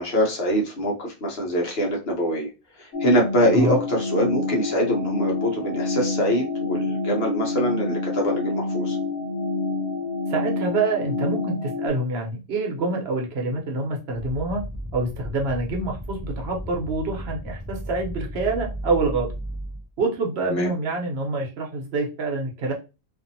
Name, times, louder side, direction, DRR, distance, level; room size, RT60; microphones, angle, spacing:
voice 1, 0.0-2.5 2.8-9.0 20.5-20.7, equal, 65° left, 0 dB, 1.1 m, -24 dB
sound 1, 2.9-11.9, left 3 dB, 90° left, 1.1 m, -27 dB
voice 2, 10.3-14.6 14.9-19.3 20.0-22.7, right 3 dB, 70° right, 1 dB, 1.0 m, -26 dB
sound 2, 14.1-19.9, right 1 dB, 20° left, 0.5 m, -34 dB
2.7 x 2.5 x 2.6 m, 0.28 s
omnidirectional pair, 1.2 m